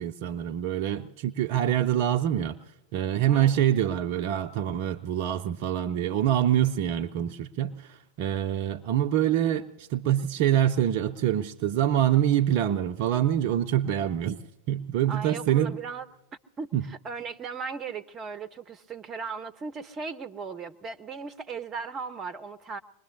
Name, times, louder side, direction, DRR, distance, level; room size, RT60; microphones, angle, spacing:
voice 1, 0.0-2.6 2.9-15.8 16.7-16.8, right 11 dB, 45° right, 7 dB, 0.5 m, -25 dB
voice 2, 3.3-3.6 15.1-16.1 16.6-22.8, right 5 dB, 25° right, 11 dB, 0.9 m, -37 dB
25.0 x 21.0 x 2.7 m, 0.97 s
figure-of-eight pair, 90°, 0 cm